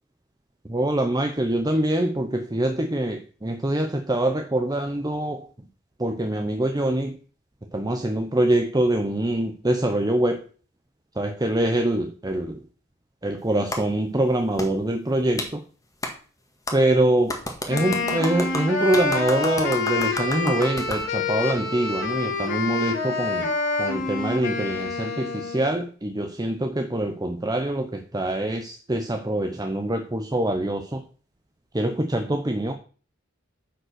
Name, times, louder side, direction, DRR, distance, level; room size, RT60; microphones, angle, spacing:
voice 1, 0.6-5.5 6.0-7.2 7.7-10.5 11.2-12.6 13.2-15.6 16.7-17.4 17.7-23.5 23.8-31.0 31.7-32.7, right 1 dB, 20° right, 5 dB, 0.8 m, -24 dB
Clapping, 13.7-13.8 14.6-14.7 15.4-15.5 16.0-16.1 16.7-16.8 17.3-21.0, left 1 dB, 15° left, 1.7 m, -31 dB
Wind instrument woodwind instrument, 17.7-25.8, left 3 dB, 65° left, 2.8 m, -27 dB
10.0 x 5.4 x 6.4 m, 0.40 s
head